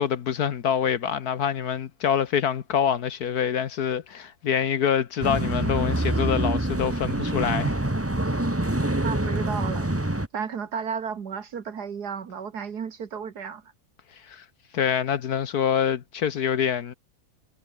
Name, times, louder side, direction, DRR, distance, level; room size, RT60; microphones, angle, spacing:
voice 1, 0.0-7.8 14.2-14.4 14.7-16.9, left 8 dB, 75° left, 1.6 m, -25 dB
sound 1, 5.2-10.3, right 1 dB, 10° right, 1.5 m, -26 dB
voice 2, 9.0-9.9 10.3-13.6, right 6 dB, 80° right, 2.2 m, -33 dB
omnidirectional pair, 1.7 m